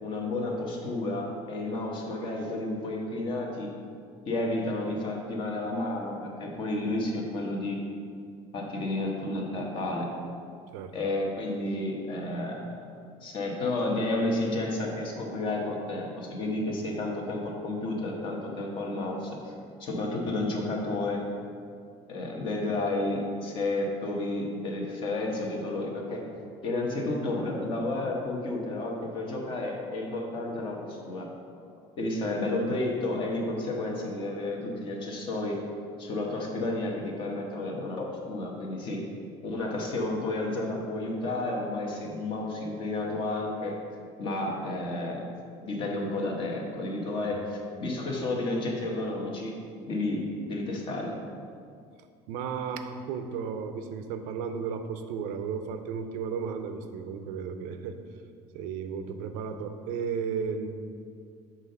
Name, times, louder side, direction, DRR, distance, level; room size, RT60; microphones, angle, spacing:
voice 1, 0.0-3.7 4.3-7.8 8.5-10.1 10.9-12.8 13.2-19.5 19.8-21.2 22.1-26.2 26.6-31.3 32.0-35.6 36.0-39.0 39.4-43.8 44.2-45.3 45.6-49.6 49.9-51.1, left 2 dB, 40° left, 0 dB, 1.1 m, -31 dB
voice 2, 52.3-58.0 58.5-60.7, right 6 dB, 90° right, 8 dB, 0.5 m, -34 dB
7.2 x 3.9 x 5.4 m, 2.3 s
cardioid pair, 170°, 13 cm